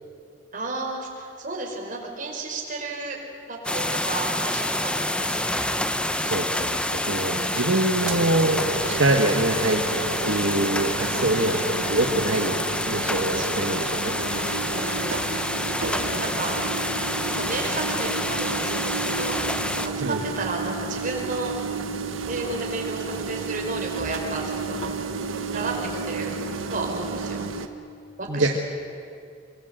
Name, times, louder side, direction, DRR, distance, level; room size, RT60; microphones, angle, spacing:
voice 1, 0.5-3.2 3.5-5.7 7.2-7.7 11.3-11.7 13.3-13.8 14.7-15.3 15.8-16.5 17.3-19.4 19.7-21.5 22.3-24.8 25.5-26.3 26.7-27.4 28.2-28.6, right 2 dB, 45° right, 0 dB, 4.9 m, -33 dB
sound 1, 3.6-19.9, left 1 dB, 5° left, 1.0 m, -27 dB
voice 2, 6.2-9.9 10.2-11.6 11.9-12.6 12.9-14.1 20.0-20.2 28.3-28.6, right 1 dB, 70° right, 2 dB, 1.6 m, -24 dB
sound 2, 8.0-27.7, right 4 dB, 90° right, 1.5 m, -32 dB
26.0 x 23.5 x 8.1 m, 2.4 s
head